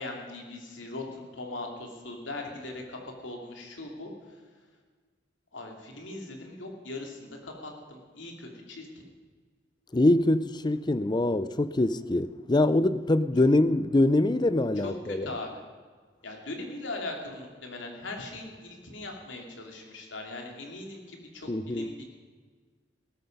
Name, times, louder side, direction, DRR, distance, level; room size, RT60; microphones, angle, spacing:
voice 1, 0.0-4.1 5.5-9.1 14.8-14.9 15.2-15.5 16.2-22.1, left 2 dB, 85° left, 2.9 m, -40 dB
voice 2, 9.9-15.4 21.5-21.9, left 2 dB, 25° left, 0.5 m, -24 dB
17.5 x 13.5 x 5.4 m
head